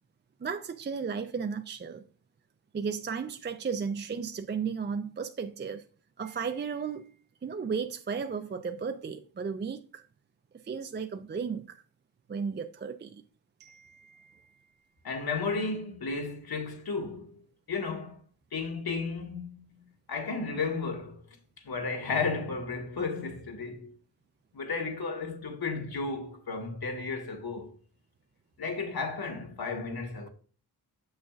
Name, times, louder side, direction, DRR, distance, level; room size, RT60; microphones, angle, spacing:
voice 1, 0.4-2.0 2.7-5.8 6.2-7.1 7.4-10.0 10.6-11.8 12.3-13.2 13.6-14.7, right 6 dB, 30° right, 0.4 m, -35 dB
voice 2, 15.0-17.4 17.7-18.2 18.5-21.2 21.6-23.9 24.5-27.7 28.6-30.3, left 4 dB, 75° left, 1.6 m, -33 dB
7.0 x 6.3 x 2.4 m
wide cardioid pair, 75°, 37 cm